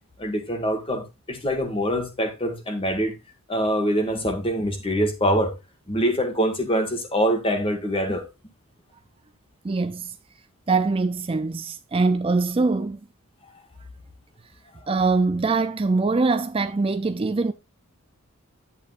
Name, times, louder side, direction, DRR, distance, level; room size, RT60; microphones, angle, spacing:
voice 1, 0.2-3.1 3.5-5.5 5.9-8.3, equal, 25° left, 1.9 m, -24 dB
voice 2, 9.6-10.1 10.7-13.0 14.9-17.5, right 3 dB, 25° right, 0.4 m, -23 dB
10.5 x 8.6 x 2.6 m
head